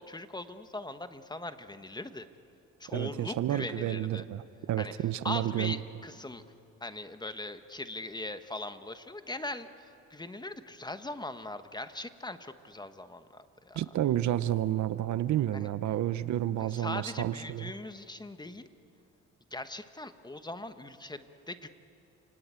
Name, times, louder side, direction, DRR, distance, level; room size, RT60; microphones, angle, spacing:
voice 1, 0.0-2.3 2.8-4.2 4.8-4.9 5.2-6.4 6.8-13.8 15.5-15.7 16.6-18.7 19.5-21.7, left 2 dB, 15° left, 10 dB, 1.2 m, -40 dB
voice 2, 2.9-5.7 13.7-17.7, right 12 dB, 70° right, 14 dB, 0.9 m, -30 dB
28.5 x 18.5 x 9.0 m, 2.7 s
cardioid pair, 90°, 30 cm